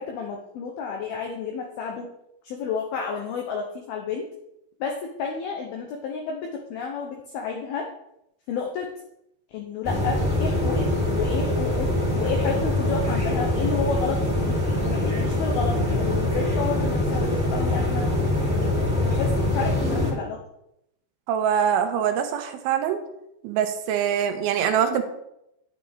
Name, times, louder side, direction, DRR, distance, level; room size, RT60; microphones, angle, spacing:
voice 1, 0.0-2.1 2.4-4.3 4.8-7.9 8.5-8.9 9.5-11.9 12.2-18.1 18.8-20.4, left 5 dB, 85° left, 1 dB, 2.1 m, -31 dB
sound 1, 9.8-20.1, left 1 dB, ahead, 1.7 m, -24 dB
voice 2, 21.3-23.0 23.4-25.0, right 8 dB, 85° right, 7 dB, 3.2 m, -23 dB
10.5 x 8.6 x 3.6 m, 0.83 s
omnidirectional pair, 5.6 m